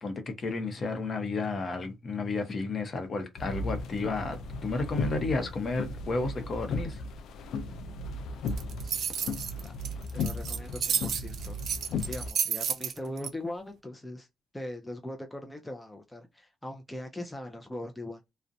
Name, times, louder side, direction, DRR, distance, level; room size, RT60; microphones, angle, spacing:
voice 1, 0.0-7.0, left 3 dB, 45° left, 0.7 m, -32 dB
sound 1, 3.4-12.3, left 3 dB, 75° left, 0.4 m, -36 dB
sound 2, 8.5-13.3, right 8 dB, 65° right, 0.4 m, -31 dB
voice 2, 8.8-9.2 9.6-11.6 12.1-14.3 14.5-18.2, left 1 dB, 10° left, 0.4 m, -40 dB
2.5 x 2.1 x 2.6 m
cardioid pair, 90°, 0 cm